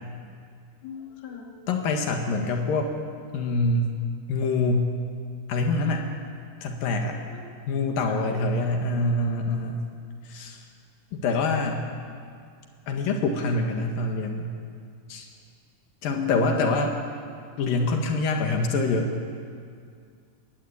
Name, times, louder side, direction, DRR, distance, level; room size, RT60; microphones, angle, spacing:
voice 1, 0.8-1.7 2.1-2.2 7.3-7.4 8.1-8.4 16.1-16.6, left 7 dB, 55° left, 1 dB, 3.4 m, -35 dB
voice 2, 1.7-2.9 3.3-3.9 4.3-4.9 5.5-6.1 6.6-7.1 7.7-9.8 10.3-10.6 11.1-11.8 12.9-14.5 15.1-15.3 16.0-16.9 17.6-19.1, left 2 dB, 85° left, 3 dB, 3.5 m, -25 dB
22.0 x 20.0 x 8.6 m, 2.2 s
omnidirectional pair, 3.9 m